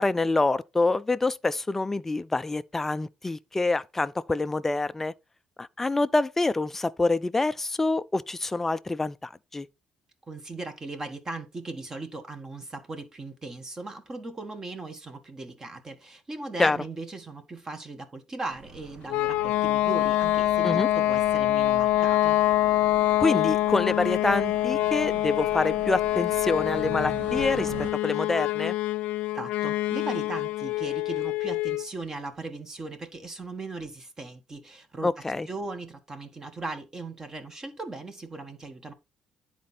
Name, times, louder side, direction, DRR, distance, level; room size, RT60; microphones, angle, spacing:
voice 1, 0.0-5.1 5.6-9.7 16.6-16.8 20.6-20.9 23.2-28.7 35.0-35.5, left 2 dB, 15° left, 0.4 m, -26 dB
voice 2, 10.3-22.4 29.3-38.9, right 2 dB, 25° right, 1.3 m, -38 dB
sound 1, 18.5-27.9, right 4 dB, 65° right, 2.2 m, -43 dB
sound 2, 19.1-31.9, left 15 dB, 80° left, 0.5 m, -25 dB
10.5 x 4.4 x 4.1 m
cardioid pair, 125°, 2 cm